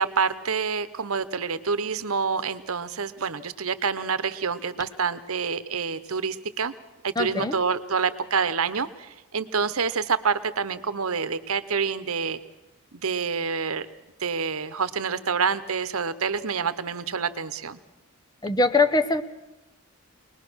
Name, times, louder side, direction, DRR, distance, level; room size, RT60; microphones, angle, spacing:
voice 1, 0.0-6.7 7.0-8.9 9.3-12.4 12.9-13.9 14.2-17.8, right 5 dB, 75° right, 13 dB, 1.0 m, -27 dB
voice 2, 7.2-7.6 18.4-19.2, left 3 dB, 20° left, 11 dB, 0.8 m, -22 dB
24.0 x 20.0 x 6.3 m, 1.0 s
head